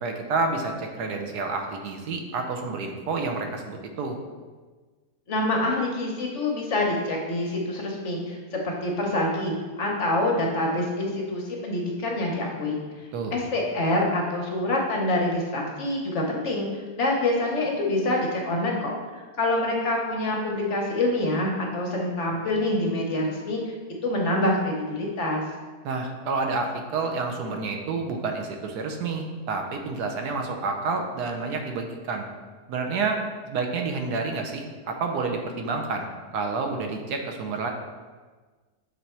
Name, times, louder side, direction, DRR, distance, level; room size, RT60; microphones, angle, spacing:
voice 1, 0.0-4.2 13.1-13.3 25.8-32.3 32.7-33.2 33.5-36.1 36.3-37.7, right 4 dB, 90° right, 4 dB, 1.3 m, -29 dB
voice 2, 5.3-12.8 13.3-16.7 17.0-23.7 24.0-25.4, left 1 dB, 55° left, -1 dB, 1.1 m, -26 dB
6.5 x 3.4 x 4.2 m, 1.4 s
omnidirectional pair, 1.7 m